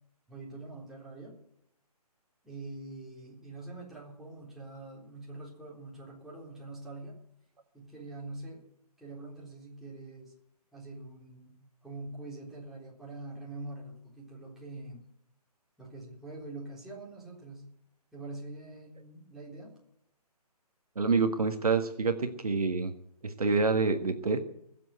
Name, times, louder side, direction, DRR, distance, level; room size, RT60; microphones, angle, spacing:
voice 1, 0.3-1.4 2.4-7.1 7.7-8.6 9.0-10.3 10.7-11.5 11.8-15.0 15.8-17.6 18.1-19.7, right 2 dB, ahead, -6 dB, 3.9 m, -44 dB
voice 2, 20.9-22.9 23.2-24.4, right 4 dB, 65° right, 7 dB, 1.6 m, -27 dB
20.5 x 7.7 x 7.8 m, 0.73 s
figure-of-eight pair, 145°, 20 cm